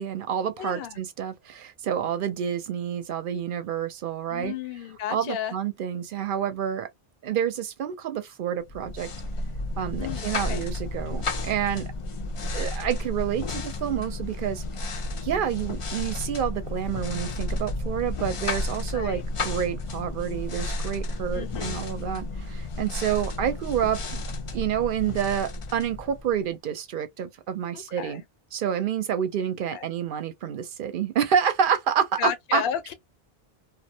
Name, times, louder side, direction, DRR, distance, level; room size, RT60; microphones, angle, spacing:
voice 1, 0.0-4.6 5.1-6.9 7.2-9.1 9.8-11.9 12.5-14.6 15.2-24.0 24.5-28.2 28.5-32.6, right 8 dB, 65° right, 0.7 m, -28 dB
voice 2, 0.6-1.0 4.3-5.5 10.0-10.6 18.9-19.2 21.3-21.9 27.7-28.2 29.7-29.9 32.2-32.9, left 9 dB, 75° left, 0.8 m, -33 dB
sound 1, 8.7-26.5, left 2 dB, 45° left, 0.4 m, -32 dB
2.3 x 2.1 x 2.6 m
omnidirectional pair, 1.0 m